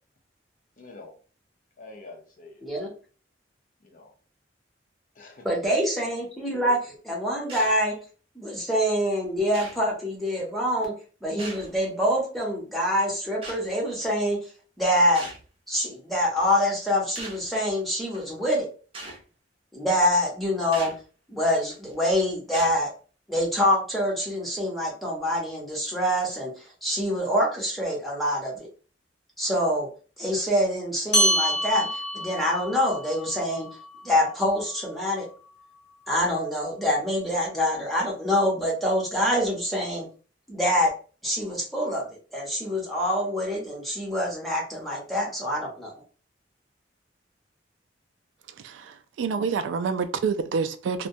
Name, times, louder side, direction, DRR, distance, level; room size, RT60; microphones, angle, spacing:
voice 1, 0.8-1.2 1.8-2.9 3.8-4.1 5.2-5.5 6.5-6.7, left 3 dB, 45° left, 0.6 m, -46 dB
voice 2, 2.6-2.9 5.4-6.8 7.0-8.0 8.3-10.9 11.2-14.4 14.8-15.2 15.7-18.7 19.7-20.9 21.3-22.9 23.3-28.7 29.4-29.9 30.2-31.9 32.1-33.7 34.0-35.3 36.1-40.1 40.5-40.9 41.2-45.9, equal, ahead, 0.8 m, -25 dB
sound 1, 7.5-7.9 8.7-8.8 9.5-9.9 11.4-11.8 13.4-13.6 15.1-15.5 16.4-16.5 17.2-17.5 18.1-18.2 18.9-19.2 20.7-21.0 21.7-21.9 22.5-22.8, right 2 dB, 30° right, 0.6 m, -40 dB
sound 2, 31.1-35.9, equal, 70° left, 0.9 m, -28 dB
voice 3, 48.6-51.1, right 5 dB, 85° right, 0.3 m, -28 dB
2.2 x 2.1 x 2.6 m
head